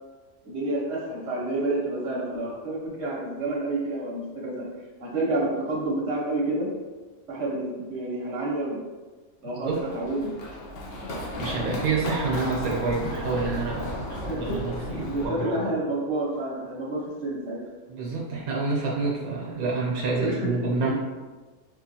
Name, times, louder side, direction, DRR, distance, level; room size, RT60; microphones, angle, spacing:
voice 1, 0.4-4.7 5.0-6.7 7.3-8.8 9.4-10.3 14.1-17.6 20.2-20.5, right 2 dB, 50° right, -5 dB, 1.3 m, -29 dB
Run, 9.6-15.2, left 1 dB, 55° left, 0.7 m, -34 dB
voice 2, 11.4-15.6 17.9-20.9, right 4 dB, 80° right, -4 dB, 1.3 m, -28 dB
4.9 x 2.5 x 2.7 m, 1.3 s
omnidirectional pair, 1.5 m